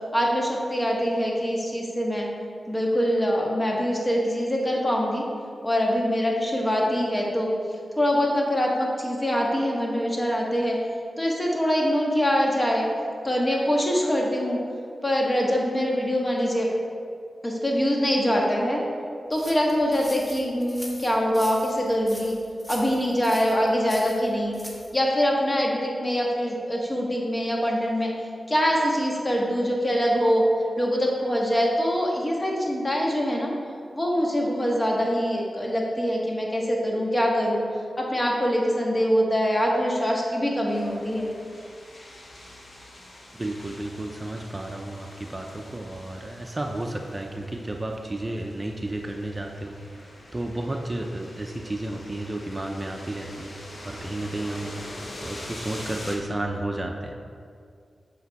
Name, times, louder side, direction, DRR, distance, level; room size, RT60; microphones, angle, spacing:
voice 1, 0.1-2.3 2.7-5.2 5.6-7.5 8.0-10.8 11.2-12.8 13.2-14.6 15.0-16.7 17.4-18.8 19.3-22.3 22.7-24.5 24.9-28.1 28.5-30.4 30.8-33.5 33.9-37.6 38.0-41.3, equal, 25° left, -1 dB, 1.5 m, -24 dB
sound 1, 19.3-24.9, equal, 5° left, 1.5 m, -42 dB
sound 2, 40.7-56.2, left 1 dB, 55° left, 1.4 m, -44 dB
voice 2, 43.3-53.6 53.8-57.2, right 1 dB, 30° right, 2 dB, 0.6 m, -32 dB
7.9 x 5.1 x 4.1 m, 2.3 s
cardioid pair, 50°, 0 cm